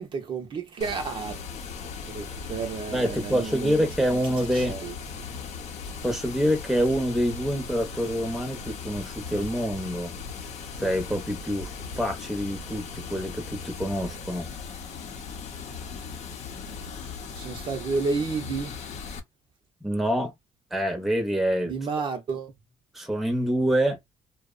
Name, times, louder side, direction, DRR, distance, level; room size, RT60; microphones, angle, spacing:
voice 1, 0.0-1.4 2.1-3.8 4.5-4.9 17.3-18.8 21.7-22.5, right 4 dB, 45° right, 0.6 m, -31 dB
Water, 0.8-19.2, left 5 dB, 65° left, 0.6 m, -38 dB
voice 2, 2.9-4.8 6.0-10.1 10.8-14.5 19.8-20.3 20.7-21.8 22.9-24.0, equal, ahead, 0.6 m, -26 dB
2.8 x 2.0 x 2.3 m
cardioid pair, 150°, 12 cm